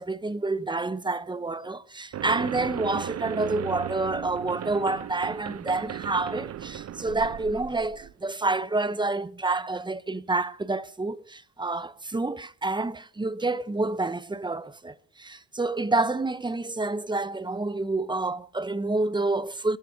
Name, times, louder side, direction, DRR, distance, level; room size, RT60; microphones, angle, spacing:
voice 1, 0.0-19.8, right 2 dB, 15° right, 0.8 m, -28 dB
sound 1, 2.1-8.1, right 11 dB, 50° right, 0.5 m, -36 dB
25.5 x 13.0 x 2.8 m
cardioid pair, 75°, 33 cm